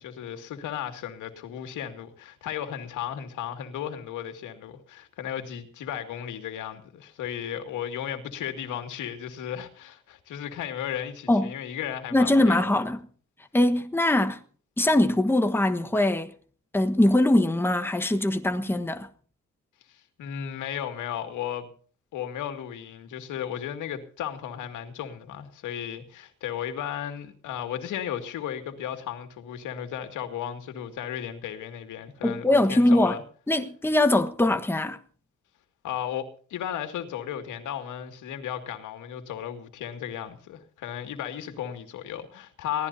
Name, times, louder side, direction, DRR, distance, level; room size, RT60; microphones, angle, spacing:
voice 1, 0.0-12.7 19.9-21.7 22.1-33.2 35.8-42.9, left 10 dB, 85° left, 2.3 m, -35 dB
voice 2, 12.1-13.0 13.5-14.4 14.8-16.3 16.7-19.1 32.2-33.2 33.5-35.0, left 1 dB, 5° left, 1.3 m, -22 dB
23.0 x 16.5 x 2.8 m
cardioid pair, 90°, 30 cm